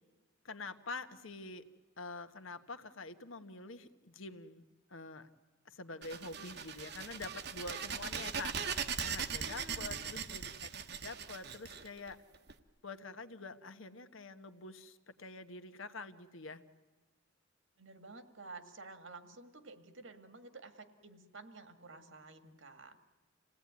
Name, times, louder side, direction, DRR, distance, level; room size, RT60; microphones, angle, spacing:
voice 1, 0.4-1.6 2.0-4.6 4.9-5.3 5.6-10.7 11.0-12.2 12.8-16.6, left 3 dB, 80° left, 9 dB, 1.3 m, -46 dB
sound 1, 6.0-12.5, right 6 dB, 50° right, 1.1 m, -40 dB
voice 2, 9.4-10.1 17.8-23.0, right 3 dB, 70° right, 8 dB, 2.0 m, -52 dB
27.0 x 17.5 x 9.6 m, 1.3 s
head